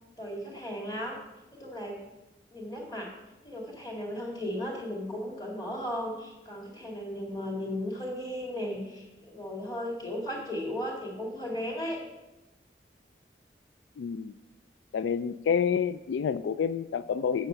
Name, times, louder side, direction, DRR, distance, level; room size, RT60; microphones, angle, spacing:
voice 1, 0.2-1.2 1.5-2.0 2.5-3.1 3.4-12.0, left 1 dB, 20° left, -1 dB, 2.1 m, -35 dB
voice 2, 14.0-14.3 14.9-17.5, left 7 dB, 90° left, 14 dB, 0.3 m, -28 dB
8.3 x 5.7 x 6.7 m, 1.0 s
head